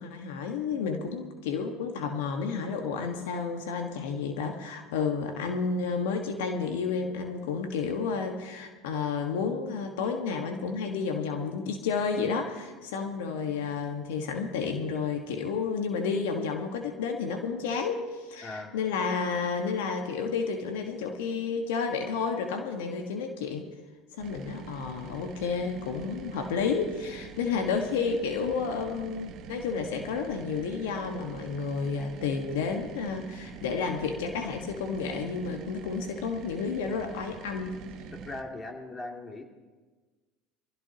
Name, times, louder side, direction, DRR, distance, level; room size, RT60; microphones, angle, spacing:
voice 1, 0.0-23.7 24.2-37.8, left 5 dB, 80° left, 4 dB, 1.5 m, -31 dB
voice 2, 18.4-18.7 38.3-39.4, left 2 dB, 25° left, 1 dB, 2.7 m, -39 dB
sound 1, 24.2-38.4, right 7 dB, 55° right, 1.2 m, -45 dB
24.5 x 16.0 x 2.9 m, 1.3 s
hypercardioid pair, 80°, 0 cm